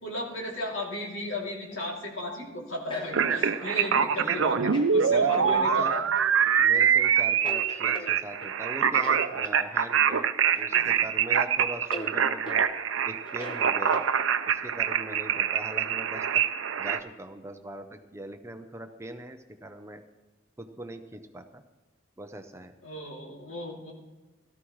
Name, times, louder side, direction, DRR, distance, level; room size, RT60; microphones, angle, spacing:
voice 1, 0.0-6.0 10.7-10.9 22.8-23.9, left 1 dB, 70° left, -2 dB, 2.8 m, -35 dB
sound 1, 1.7-2.3 2.9-4.0 4.7-4.9 5.3-5.5 6.1-6.3 6.8-7.0 7.4-8.6 8.9-9.6 10.5-11.1 11.3-11.4 11.9-12.1 12.5-12.6 13.3-14.4, left 1 dB, 25° left, 1.1 m, -42 dB
sound 2, 3.1-17.0, right 7 dB, 75° right, 0.6 m, -25 dB
voice 2, 5.1-5.9 6.6-10.3 10.5-12.7 13.0-14.0 14.5-16.2 16.8-20.0 20.6-21.6 22.2-22.7, right 1 dB, 15° right, 6 dB, 0.6 m, -41 dB
17.0 x 12.5 x 3.1 m, 1.1 s
head